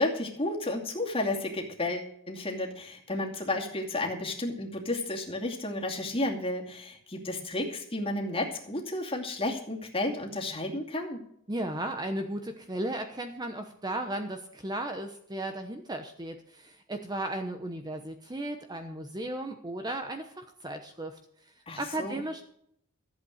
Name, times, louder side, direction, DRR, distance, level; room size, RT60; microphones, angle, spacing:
voice 1, 0.0-11.2 21.7-22.2, left 2 dB, 25° left, 0 dB, 2.4 m, -32 dB
voice 2, 11.5-21.2 21.8-22.4, right 1 dB, 20° right, 6 dB, 0.9 m, -35 dB
14.5 x 8.1 x 6.5 m, 0.69 s
head